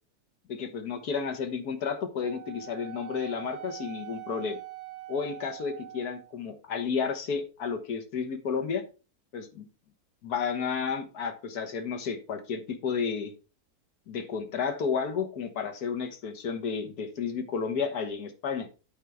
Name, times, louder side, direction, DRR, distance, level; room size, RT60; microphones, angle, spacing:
voice 1, 0.5-4.6 5.1-8.8 9.3-9.6 10.2-13.3 14.1-18.7, left 6 dB, 75° left, 5 dB, 1.7 m, -32 dB
Wind instrument woodwind instrument, 2.2-6.4, right 13 dB, 90° right, 1.3 m, -43 dB
10.5 x 4.5 x 3.5 m, 0.33 s
omnidirectional pair, 1.7 m